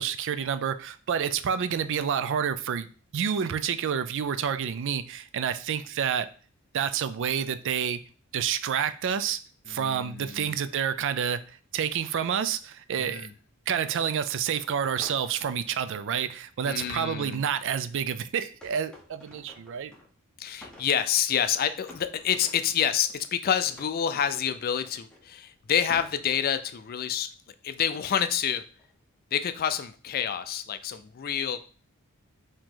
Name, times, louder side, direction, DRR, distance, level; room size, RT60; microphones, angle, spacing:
voice 1, 0.0-2.9 3.1-6.3 6.7-8.0 8.3-9.4 9.7-13.3 13.7-19.9, right 8 dB, 60° right, 0.4 m, -29 dB
voice 2, 9.7-10.6 13.0-13.3 16.6-17.4 20.4-27.3 27.6-28.6 29.3-31.6, left 8 dB, 45° left, 0.4 m, -28 dB
sound 1, 14.1-14.3 15.0-16.1 16.8-18.0 18.6-20.2 20.5-21.6 21.9-23.3 23.7-25.5 25.9-26.9 28.0-28.3 28.8-29.1, left 1 dB, 5° left, 0.8 m, -51 dB
4.9 x 2.8 x 3.7 m
head